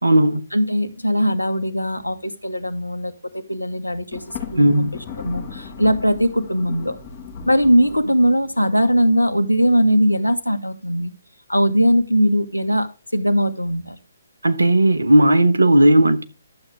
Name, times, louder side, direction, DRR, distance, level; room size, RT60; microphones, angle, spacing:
voice 1, 0.0-0.4 4.6-4.9 14.4-16.2, right 1 dB, 70° right, 1.4 m, -15 dB
voice 2, 0.5-4.2 4.5-4.9 5.2-7.0 7.5-11.1 11.5-12.9 13.1-14.0, equal, 85° left, 1.5 m, -20 dB
Thunder, 4.1-8.7, left 6 dB, 30° left, 6.1 m, -36 dB
12.0 x 7.8 x 3.5 m
figure-of-eight pair, 135°, 0 cm